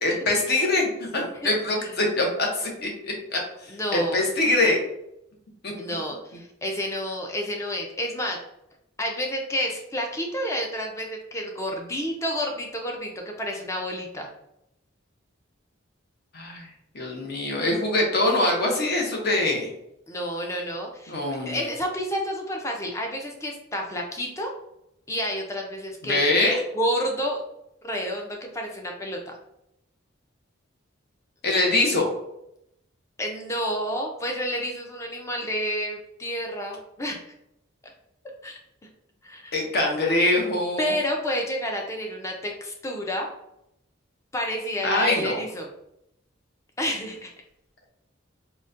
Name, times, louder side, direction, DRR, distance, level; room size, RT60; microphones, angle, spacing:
voice 1, 0.0-3.4 3.9-4.8 5.6-5.7 16.3-16.7 16.9-19.7 21.1-21.6 26.0-26.6 31.4-32.1 39.5-40.9 44.8-45.4, left 2 dB, 50° left, 0 dB, 0.7 m, -23 dB
voice 2, 3.7-4.2 5.7-8.4 9.0-14.3 20.1-24.5 25.1-26.3 26.7-27.4 27.8-29.3 33.2-37.2 38.4-38.6 39.2-39.5 40.8-43.3 44.3-45.7 46.8-47.3, equal, 15° left, 1 dB, 0.4 m, -30 dB
3.8 x 2.1 x 2.4 m, 0.82 s
head